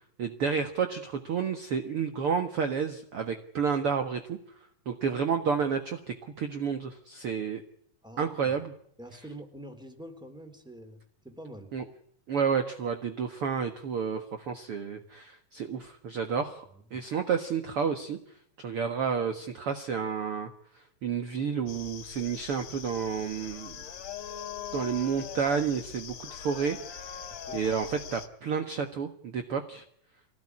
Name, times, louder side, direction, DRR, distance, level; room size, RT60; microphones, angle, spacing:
voice 1, 0.2-4.4 4.9-7.6 8.2-8.7 11.7-11.8 12.3-16.6 16.9-18.2 18.6-20.5 20.8-23.8 24.7-27.3 27.5-29.8, right 6 dB, 50° right, 7 dB, 2.1 m, -30 dB
voice 2, 8.0-8.6 9.0-11.7 16.7-17.0 27.3-27.6, right 1 dB, ahead, 7 dB, 3.5 m, -46 dB
sound 1, 21.7-28.3, left 8 dB, 60° left, 2.9 m, -41 dB
24.5 x 18.0 x 9.9 m, 0.69 s
omnidirectional pair, 3.8 m